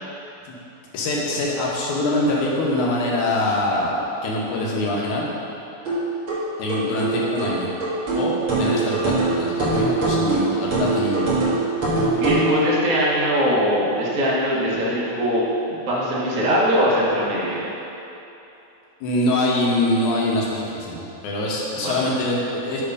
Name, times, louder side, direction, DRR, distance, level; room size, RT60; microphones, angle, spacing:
voice 1, 0.9-5.3 6.6-7.7 8.1-11.4 19.0-22.8, left 1 dB, 75° left, -4 dB, 2.5 m, -24 dB
sound 1, 5.8-12.5, right 3 dB, 45° right, 2.4 m, -22 dB
voice 2, 12.2-17.6 21.8-22.1, equal, 75° right, -7 dB, 0.7 m, -21 dB
9.1 x 3.6 x 5.3 m, 2.9 s
omnidirectional pair, 3.6 m